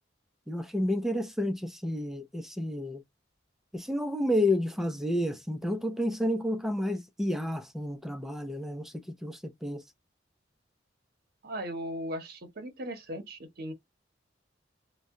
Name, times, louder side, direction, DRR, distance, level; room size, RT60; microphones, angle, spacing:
voice 1, 0.5-3.0 3.7-8.9 9.2-9.8, left 1 dB, ahead, 0.4 m, -30 dB
voice 2, 11.4-13.7, equal, 55° right, 0.8 m, -37 dB
2.7 x 2.1 x 3.6 m
head